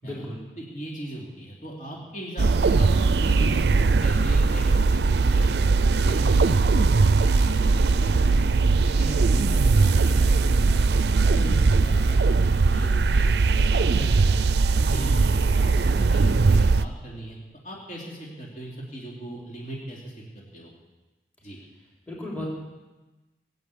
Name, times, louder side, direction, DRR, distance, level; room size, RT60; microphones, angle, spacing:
voice 1, 0.0-0.4 14.9-15.1 22.1-22.5, equal, 10° left, -4 dB, 3.9 m, -34 dB
voice 2, 0.6-5.5 5.9-8.5 8.8-10.9 11.2-14.4 14.7-17.4 17.6-20.1 20.5-20.7 21.4-21.6, right 1 dB, 45° left, -4 dB, 3.1 m, -38 dB
sound 1, 2.4-16.9, right 4 dB, 65° right, 0.5 m, -20 dB
18.5 x 8.4 x 8.5 m, 1.1 s
head